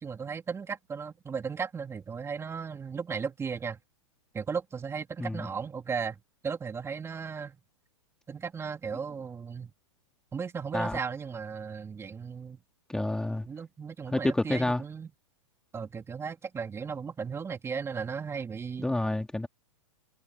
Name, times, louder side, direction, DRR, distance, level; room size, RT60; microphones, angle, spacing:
voice 1, 0.0-3.8 4.3-6.2 6.4-7.6 8.3-9.7 10.3-12.6 13.5-15.1 15.7-18.9, right 6 dB, 15° right, 2.9 m, -36 dB
voice 2, 12.9-13.5 14.1-14.8 18.8-19.5, left 2 dB, 5° left, 2.1 m, -29 dB
hypercardioid pair, 115°, 17 cm